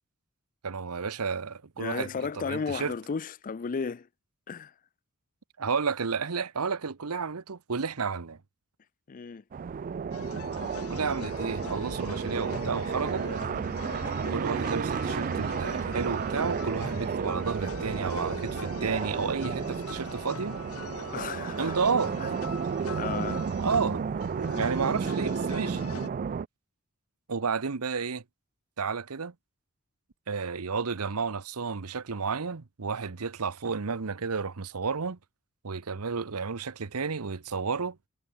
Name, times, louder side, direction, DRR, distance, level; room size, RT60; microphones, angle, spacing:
voice 1, 0.6-2.9 5.6-8.4 10.9-13.3 14.3-20.6 21.6-22.1 23.6-24.0 24.5-25.8 27.3-28.2 28.8-29.3 30.3-35.2 35.6-38.0, right 5 dB, 90° right, 0.9 m, -31 dB
voice 2, 1.8-4.1 4.5-4.7 9.1-9.4 21.1-21.7 22.2-22.3 23.0-23.5, left 5 dB, 40° left, 0.4 m, -34 dB
sound 1, 9.5-26.5, right 6 dB, 40° right, 0.3 m, -32 dB
sound 2, 10.1-26.1, left 3 dB, 80° left, 5.5 m, -42 dB
head